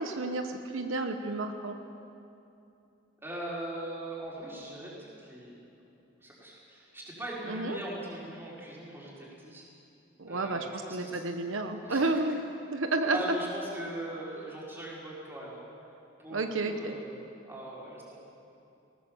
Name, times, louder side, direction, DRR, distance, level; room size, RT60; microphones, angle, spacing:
voice 1, 0.0-1.8 7.5-7.8 10.2-12.4 12.7-13.2 16.3-16.9, right 2 dB, 80° right, 6 dB, 1.1 m, -31 dB
voice 2, 3.2-5.6 6.2-9.6 10.3-11.2 11.8-12.1 13.1-15.7 16.2-18.2, right 1 dB, 10° right, -6 dB, 4.7 m, -40 dB
19.0 x 19.0 x 7.2 m, 2.7 s
head